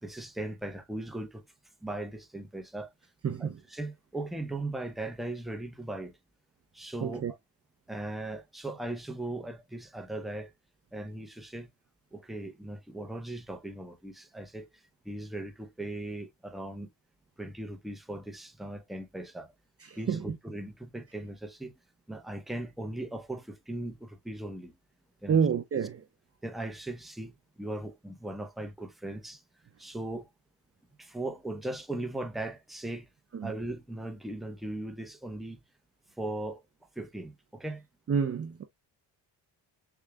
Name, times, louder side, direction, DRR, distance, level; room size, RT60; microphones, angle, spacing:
voice 1, 0.0-1.4 1.8-2.9 3.4-6.2 6.7-7.2 7.9-10.5 10.9-11.7 12.1-16.9 17.4-19.5 20.0-21.7 22.1-24.7 25.2-25.4 26.4-29.4 29.8-30.3 31.0-33.1 33.4-35.6 36.2-36.6 37.0-37.9, right 1 dB, ahead, 0.8 m, -38 dB
voice 2, 3.2-3.6 7.0-7.3 19.9-20.4 25.3-26.0 33.3-33.5 38.1-38.6, right 7 dB, 35° right, 0.6 m, -29 dB
6.5 x 2.4 x 2.3 m
cardioid pair, 70°, 44 cm